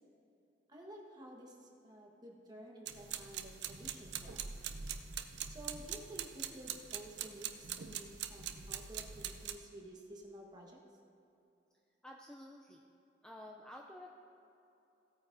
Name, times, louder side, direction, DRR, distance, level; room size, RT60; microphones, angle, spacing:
voice 1, 0.7-4.7 5.5-10.8, right 1 dB, 25° right, -1 dB, 1.3 m, -52 dB
sound 1, 2.9-9.5, right 8 dB, 70° right, 0.6 m, -43 dB
voice 2, 12.0-12.9 13.2-14.2, left 1 dB, 5° left, 0 dB, 0.4 m, -51 dB
17.0 x 8.9 x 2.6 m, 2.9 s
head